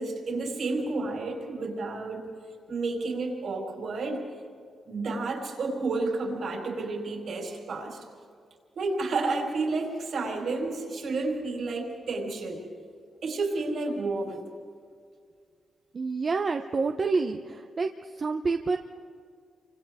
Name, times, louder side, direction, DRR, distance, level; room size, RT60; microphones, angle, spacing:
voice 1, 0.0-2.2 2.7-4.2 4.9-8.0 8.7-12.6 13.2-14.4, right 3 dB, 65° right, 0 dB, 4.5 m, -31 dB
voice 2, 15.9-17.9 18.2-18.8, right 4 dB, 45° right, 5 dB, 0.7 m, -28 dB
29.0 x 25.0 x 3.6 m, 2.1 s
cardioid pair, 100°, 0 cm